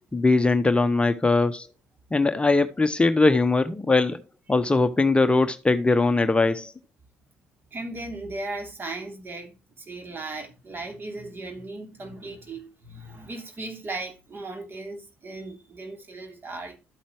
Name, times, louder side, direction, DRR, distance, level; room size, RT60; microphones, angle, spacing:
voice 1, 0.1-1.7 2.1-4.2 4.5-6.7, left 3 dB, 15° left, 0.9 m, -21 dB
voice 2, 7.7-16.8, right 2 dB, 35° right, 3.2 m, -37 dB
12.5 x 8.4 x 3.1 m
figure-of-eight pair, 45°, 6 cm